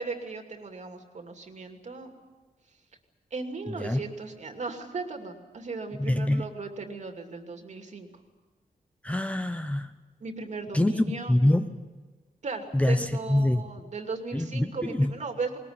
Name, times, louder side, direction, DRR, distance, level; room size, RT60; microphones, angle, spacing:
voice 1, 0.0-2.1 3.3-8.1 10.2-11.3 12.4-15.6, right 4 dB, 50° right, 5 dB, 2.7 m, -37 dB
voice 2, 3.7-4.0 6.0-6.5 9.0-9.9 10.7-11.7 12.7-13.6 14.3-15.1, left 1 dB, 10° left, 9 dB, 0.8 m, -25 dB
20.5 x 20.0 x 9.7 m, 1.3 s
wide cardioid pair, 140°, 15 cm